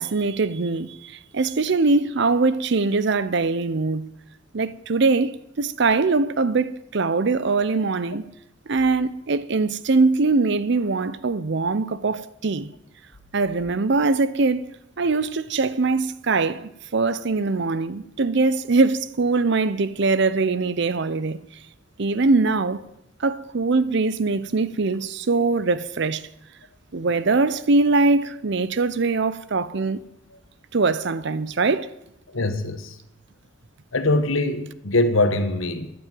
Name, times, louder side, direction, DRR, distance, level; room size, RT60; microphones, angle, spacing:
voice 1, 0.0-4.1 4.5-8.3 8.7-12.7 13.3-14.6 15.0-21.4 22.0-22.8 23.2-26.3 26.9-30.0 30.7-31.9, right 3 dB, 55° right, 0.6 m, -22 dB
voice 2, 32.3-33.0 33.9-35.9, left 2 dB, 75° left, 1.4 m, -22 dB
11.0 x 9.5 x 9.1 m
head